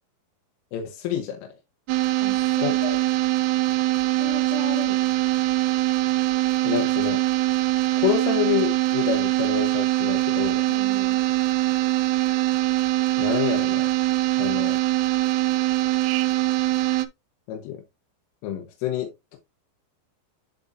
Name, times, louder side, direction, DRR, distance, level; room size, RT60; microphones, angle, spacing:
voice 1, 0.7-1.5 2.6-3.0 6.6-7.2 8.0-10.6 13.2-13.9 14.4-14.8 17.5-17.8 18.4-19.4, left 10 dB, 90° left, 3.6 m, -28 dB
sound 1, 1.9-17.1, right 18 dB, 85° right, 3.2 m, -23 dB
voice 2, 2.2-2.8 4.1-5.1 10.7-11.2, left 5 dB, 65° left, 4.6 m, -37 dB
11.5 x 3.9 x 2.6 m
omnidirectional pair, 5.6 m